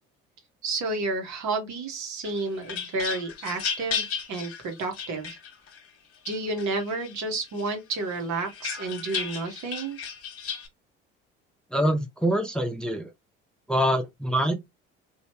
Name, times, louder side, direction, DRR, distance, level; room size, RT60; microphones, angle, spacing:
voice 1, 0.6-5.4 6.3-10.0, right 3 dB, 55° right, 1.4 m, -31 dB
sound 1, 2.2-5.8 6.3-7.2 7.6-10.7, left 6 dB, 45° left, 1.2 m, -34 dB
voice 2, 11.7-13.1 13.7-14.5, equal, ahead, 0.7 m, -25 dB
3.1 x 2.7 x 2.9 m
hypercardioid pair, 60°, 33 cm